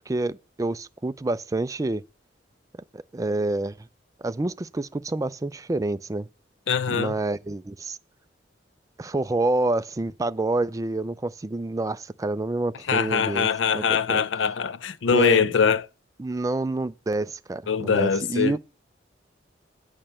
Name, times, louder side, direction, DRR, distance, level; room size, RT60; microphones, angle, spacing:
voice 1, 0.1-2.0 2.9-3.9 4.2-6.3 6.9-8.0 9.0-13.5 13.7-14.2 15.1-15.5 16.2-18.6, right 2 dB, 20° right, 0.4 m, -27 dB
voice 2, 6.7-7.1 12.9-15.8 17.7-18.6, left 6 dB, 75° left, 0.5 m, -22 dB
8.9 x 5.5 x 7.4 m
head